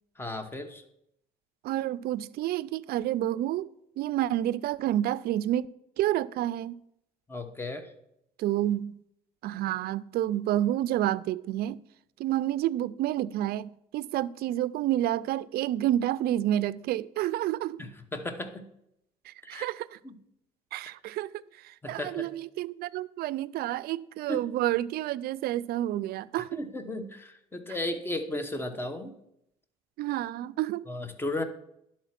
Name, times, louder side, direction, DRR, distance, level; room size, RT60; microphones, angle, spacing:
voice 1, 0.2-0.8 7.3-7.9 17.8-18.7 19.4-19.7 20.0-20.2 21.8-22.3 24.3-24.4 26.6-29.1 30.9-31.4, left 1 dB, 15° left, 1.0 m, -35 dB
voice 2, 1.6-3.7 4.0-5.7 6.0-6.8 8.4-9.0 9.4-11.8 12.2-17.8 19.3-20.0 20.7-26.6 30.0-30.9, right 13 dB, 65° right, 0.4 m, -29 dB
11.0 x 4.3 x 5.8 m
cardioid pair, 110°, 17 cm